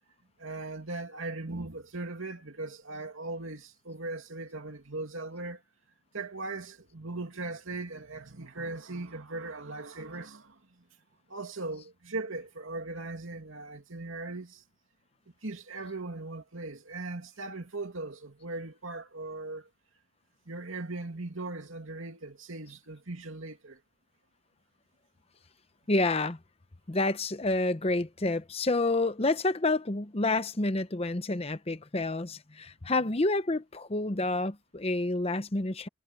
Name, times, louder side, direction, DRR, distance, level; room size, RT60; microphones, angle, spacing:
voice 1, 0.4-5.6 6.1-10.8 11.3-14.6 15.4-19.7 20.5-23.8, right 2 dB, 75° right, 2.6 m, -39 dB
voice 2, 25.9-26.4 26.9-35.9, left 2 dB, 30° left, 0.8 m, -29 dB
head